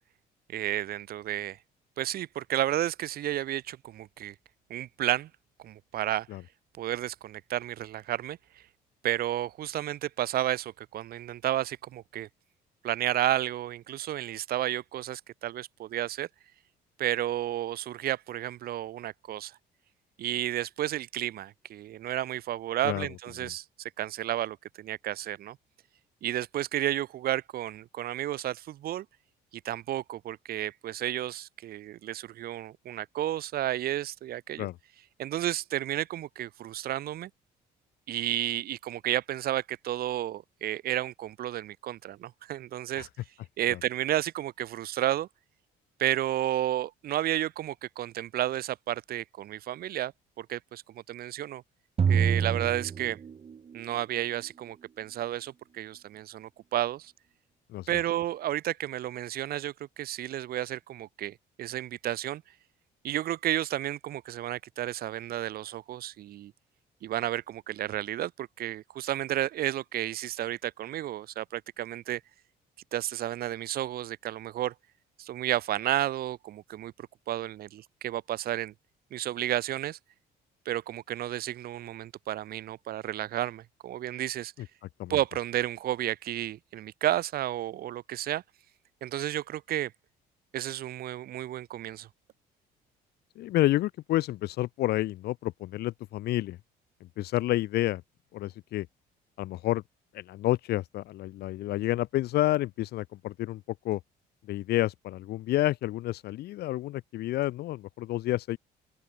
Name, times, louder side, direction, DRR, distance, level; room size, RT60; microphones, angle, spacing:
voice 1, 0.5-1.6 2.0-4.3 4.7-5.3 5.6-6.3 6.8-8.4 9.0-12.3 12.8-16.3 17.0-19.6 20.2-23.6 24.0-25.6 26.2-29.0 29.6-34.7 35.2-37.3 38.1-43.1 43.6-45.3 46.0-50.1 50.4-51.6 52.1-53.2 53.7-57.1 57.9-62.4 63.0-66.5 67.0-72.2 72.9-74.7 75.2-76.9 77.3-78.7 79.1-80.0 80.6-84.5 85.1-88.4 89.0-89.9 90.5-92.1, right 13 dB, 65° right, 1.4 m, -32 dB
sound 1, 52.0-53.8, right 7 dB, 35° right, 1.8 m, -26 dB
voice 2, 93.4-96.6 97.2-98.0 98.3-98.9 99.4-99.8 100.1-104.0 104.5-108.6, left 15 dB, 70° left, 1.0 m, -29 dB
open air
cardioid pair, 110°, 17 cm